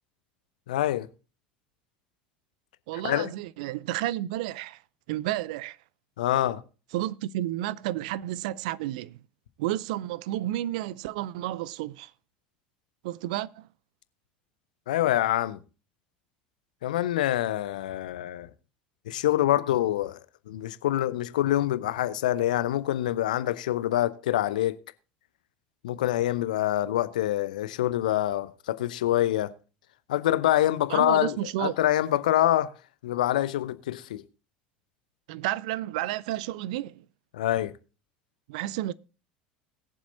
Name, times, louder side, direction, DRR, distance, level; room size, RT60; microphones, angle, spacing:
voice 1, 0.7-1.1 3.0-3.3 6.2-6.6 14.9-15.6 16.8-18.5 19.1-20.2 20.5-24.8 25.8-29.5 30.1-32.7 33.0-34.2 37.3-37.7, left 13 dB, 70° left, 0.7 m, -25 dB
voice 2, 2.9-4.8 5.1-5.8 6.9-9.2 9.6-12.1 13.0-13.7 30.9-31.7 35.3-37.0 38.5-38.9, right 14 dB, 65° right, 0.5 m, -31 dB
21.0 x 7.3 x 2.7 m
figure-of-eight pair, 70°, 4 cm